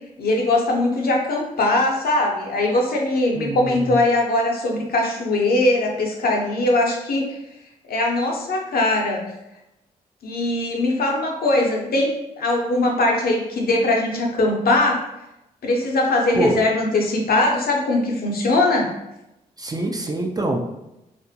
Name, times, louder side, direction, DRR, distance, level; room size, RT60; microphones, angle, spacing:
voice 1, 0.2-7.4 7.9-9.3 10.2-15.1 15.6-18.9, left 2 dB, 60° left, 0 dB, 0.6 m, -21 dB
voice 2, 3.4-3.7 16.4-16.6 19.6-20.6, right 2 dB, 20° right, 2 dB, 0.4 m, -24 dB
2.4 x 2.1 x 2.7 m, 0.91 s
hypercardioid pair, 40°, 18 cm